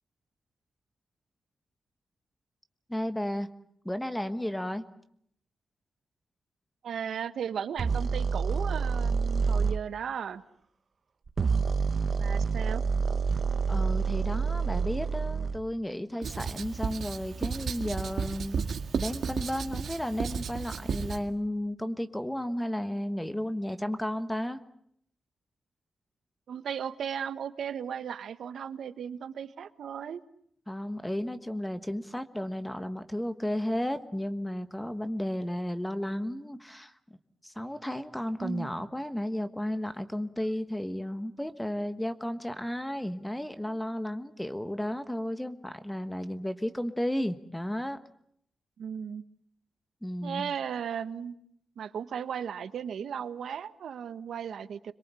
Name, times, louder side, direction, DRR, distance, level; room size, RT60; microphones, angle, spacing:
voice 1, 2.9-3.5 3.8-4.8 13.7-18.7 18.9-24.6 30.7-36.9 37.4-48.0 50.0-50.5, left 1 dB, 5° left, 10 dB, 1.3 m, -33 dB
voice 2, 6.8-10.4 12.2-12.8 26.5-30.2 38.4-38.7 48.8-49.2 50.2-51.3 51.8-54.9, right 8 dB, 80° right, 12 dB, 1.2 m, -36 dB
sound 1, 7.8-9.8 11.3-15.6, right 5 dB, 40° right, 1.1 m, -28 dB
Writing, 16.2-21.2, right 6 dB, 65° right, 1.9 m, -33 dB
26.0 x 22.5 x 8.3 m, 0.69 s
wide cardioid pair, 155°, 0 cm